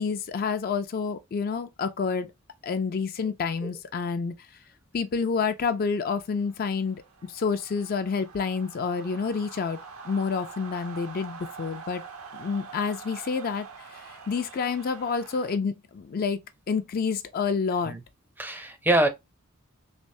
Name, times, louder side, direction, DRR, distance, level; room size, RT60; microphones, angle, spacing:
voice 1, 0.0-2.3 2.6-4.3 4.9-9.8 10.0-12.0 12.3-13.7 13.9-16.4 16.7-18.0, left 5 dB, 45° left, 0.4 m, -28 dB
sound 1, 5.7-15.6, right 5 dB, 80° right, 0.8 m, -45 dB
voice 2, 18.4-19.1, right 1 dB, 10° right, 0.5 m, -24 dB
3.3 x 3.1 x 2.6 m
head